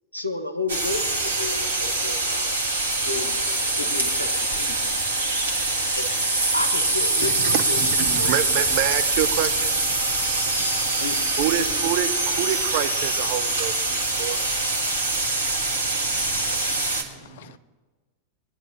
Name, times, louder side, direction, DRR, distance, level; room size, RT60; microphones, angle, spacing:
voice 1, 0.1-2.6 3.0-3.4 3.8-4.9 5.9-6.2 6.5-7.8 8.1-8.3 10.6-10.7 11.0-11.2 11.5-11.7, left 3 dB, 85° left, 1.0 m, -32 dB
sound 1, 0.7-17.0, right 2 dB, 75° right, 1.4 m, -24 dB
voice 2, 7.2-10.9 11.4-14.5 15.6-15.7 16.0-16.4 17.1-17.6, right 12 dB, 45° right, 0.6 m, -28 dB
voice 3, 15.6-17.6, left 9 dB, 55° left, 0.6 m, -48 dB
19.5 x 10.5 x 2.8 m
figure-of-eight pair, 90°, 0 cm